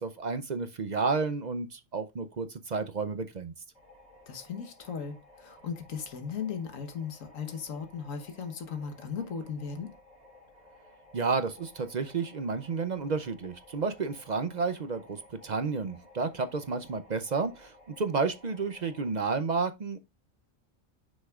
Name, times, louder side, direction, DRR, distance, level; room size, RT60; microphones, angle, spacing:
voice 1, 0.0-3.5 11.1-20.0, right 4 dB, 45° right, 0.6 m, -31 dB
sound 1, 3.7-19.1, left 1 dB, 30° left, 3.8 m, -56 dB
voice 2, 4.3-9.9, left 6 dB, 85° left, 1.6 m, -37 dB
7.9 x 6.4 x 2.4 m
omnidirectional pair, 1.3 m